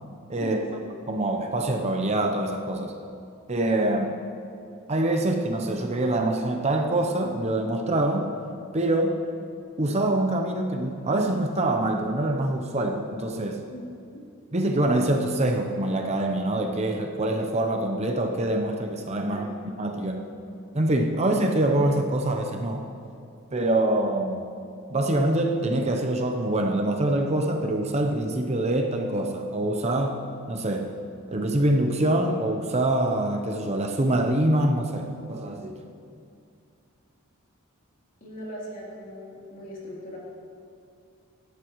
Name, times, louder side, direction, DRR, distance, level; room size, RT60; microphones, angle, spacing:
voice 1, 0.4-0.8 3.9-4.0 13.7-14.2 19.3-19.6 38.2-40.2, equal, 40° left, -5 dB, 3.1 m, -40 dB
voice 2, 1.1-2.9 3.5-4.1 4.9-8.3 8.7-9.2 9.8-13.6 14.5-20.3 20.7-22.9 23.5-24.4 24.9-30.9 31.3-35.8, right 1 dB, 30° right, 3 dB, 0.7 m, -25 dB
17.5 x 11.5 x 3.1 m, 2.5 s
head